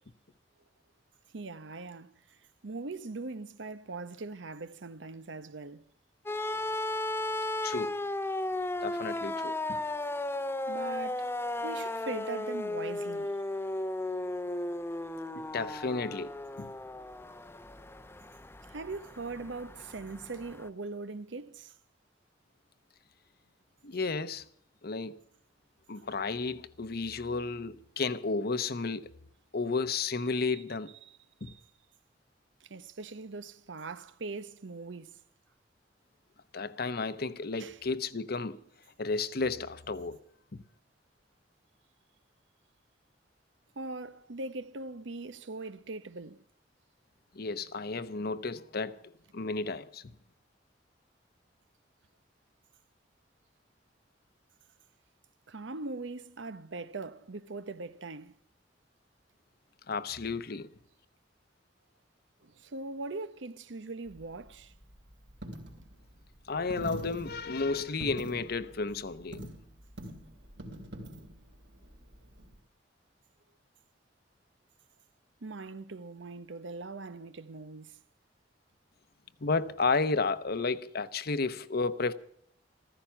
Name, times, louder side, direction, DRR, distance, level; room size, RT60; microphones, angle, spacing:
voice 1, 1.3-2.1 2.6-5.8 10.7-11.3 11.6-13.4 18.7-21.7 30.5-30.6 31.0-31.6 32.6-35.1 37.6-37.8 43.8-46.4 55.5-58.3 62.4-64.7 75.4-78.0, right 3 dB, 90° right, 0.8 m, -41 dB
sound 1, 6.3-20.7, left 2 dB, 15° left, 0.7 m, -35 dB
voice 2, 7.6-8.0 8.8-9.8 15.3-16.3 16.6-16.7 23.8-24.4 24.8-25.2 25.9-29.1 29.5-30.9 31.4-31.5 36.5-38.6 39.0-40.2 40.5-40.6 47.3-49.0 49.3-50.1 59.9-60.7 66.5-69.5 79.4-82.1, left 4 dB, 55° left, 0.9 m, -32 dB
Coin (dropping), 64.0-72.6, equal, 70° right, 3.3 m, -45 dB
15.0 x 14.5 x 5.7 m
head